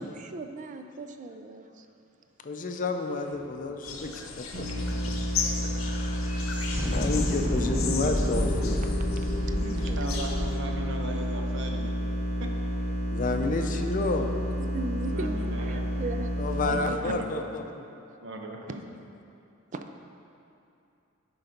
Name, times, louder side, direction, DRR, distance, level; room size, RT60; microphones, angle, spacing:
voice 1, 0.0-1.9 7.1-8.2 9.2-9.5 9.9-10.1 14.6-17.6 19.7-19.8, right 2 dB, 40° right, 7 dB, 0.4 m, -38 dB
voice 2, 2.4-4.9 5.6-8.8 13.1-14.3 16.4-17.8, left 3 dB, 40° left, 5 dB, 0.5 m, -31 dB
sound 1, 3.3-3.4 3.7-11.9, left 1 dB, 5° right, 1.8 m, -32 dB
sound 2, 3.8-10.6, left 6 dB, 85° left, 0.8 m, -37 dB
sound 3, 4.5-16.6, equal, 85° right, 1.5 m, -30 dB
voice 3, 9.5-11.9 12.4-12.5 15.1-15.9 16.7-17.3 18.2-18.8, right 1 dB, 60° right, 1 dB, 0.9 m, -38 dB
10.0 x 3.9 x 5.2 m, 2.6 s
head